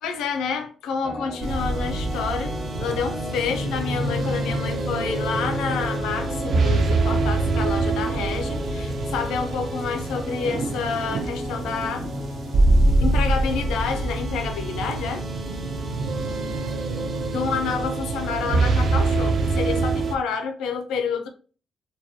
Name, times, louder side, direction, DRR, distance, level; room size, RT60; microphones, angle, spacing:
voice 1, 0.0-12.1 13.0-15.2 17.3-21.3, left 6 dB, 85° left, 0.4 m, -29 dB
sound 1, 1.0-20.2, left 2 dB, 20° left, 0.4 m, -34 dB
sound 2, 1.4-20.1, right 3 dB, 60° right, 0.3 m, -25 dB
2.2 x 2.1 x 2.6 m
cardioid pair, 90°, 0 cm